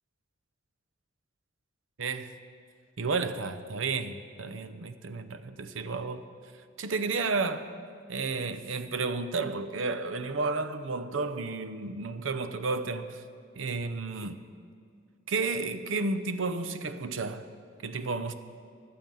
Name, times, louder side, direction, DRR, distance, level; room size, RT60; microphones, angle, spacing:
voice 1, 2.0-2.4 3.0-6.3 6.8-7.7 8.1-13.2 13.5-14.4 15.3-17.5 17.8-18.3, right 3 dB, 85° right, 0.7 m, -32 dB
11.5 x 9.1 x 7.7 m
head